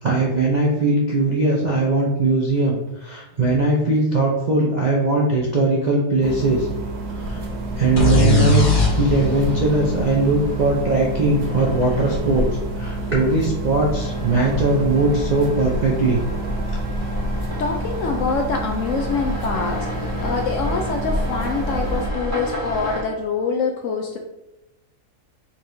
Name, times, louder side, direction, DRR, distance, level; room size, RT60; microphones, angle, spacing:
voice 1, 0.0-6.7 7.1-7.4 7.8-16.2, right 2 dB, 50° right, -3 dB, 0.5 m, -20 dB
sound 1, 6.2-22.1, right 2 dB, 75° right, 1.3 m, -30 dB
sound 2, 7.2-23.0, left 1 dB, 10° right, 1.5 m, -30 dB
sound 3, 8.0-11.6, left 2 dB, 90° left, 1.9 m, -21 dB
voice 2, 17.6-24.2, left 4 dB, 70° left, 2 dB, 0.8 m, -25 dB
4.7 x 4.3 x 2.7 m, 0.91 s
omnidirectional pair, 1.7 m